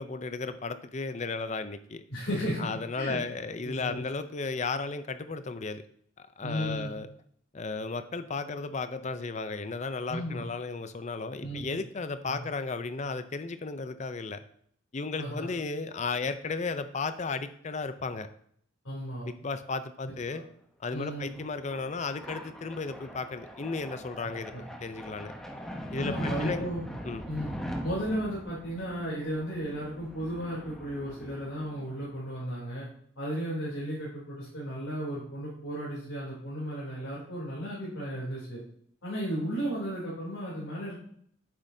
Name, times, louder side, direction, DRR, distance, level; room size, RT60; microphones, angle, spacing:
voice 1, 0.0-2.0 2.6-5.8 6.2-7.1 7.5-14.4 14.9-18.3 19.2-20.4 20.8-24.5 24.8-25.3 25.9-26.6 27.0-27.2, left 4 dB, 35° left, 11 dB, 0.5 m, -34 dB
voice 2, 2.1-2.7 2.9-3.2 3.6-4.0 6.4-6.9 10.1-10.4 11.4-11.7 12.3-12.4 15.2-15.5 18.8-19.3 20.0-20.4 20.9-21.3 24.5-24.6 26.0-26.8 27.3-27.5 27.8-32.9 33.2-38.6 39.0-41.0, equal, 80° left, -8 dB, 3.1 m, -34 dB
sound 1, 21.1-32.3, equal, ahead, 0.7 m, -41 dB
9.4 x 7.3 x 2.7 m, 0.64 s
head